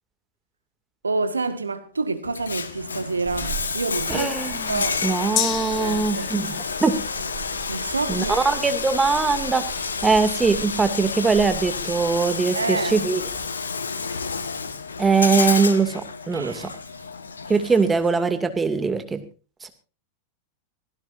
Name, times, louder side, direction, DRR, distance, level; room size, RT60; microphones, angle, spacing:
voice 1, 1.0-4.3 4.7-5.0 5.7-6.3 7.7-8.7 12.5-13.0 16.3-17.0, right 3 dB, 75° right, 1.7 m, -28 dB
Bathtub (filling or washing), 2.2-18.2, left 5 dB, 70° left, 1.5 m, -30 dB
sound 1, 3.2-13.4, right 13 dB, 35° right, 5.5 m, -41 dB
voice 2, 4.1-7.0 8.1-13.2 15.0-16.7 17.5-19.2 19.6-19.7, right 4 dB, 15° right, 2.5 m, -22 dB
Gong, 5.4-13.1 13.5-13.6, left 11 dB, 40° left, 2.1 m, -35 dB
24.0 x 17.0 x 2.7 m
figure-of-eight pair, 90°, 0 cm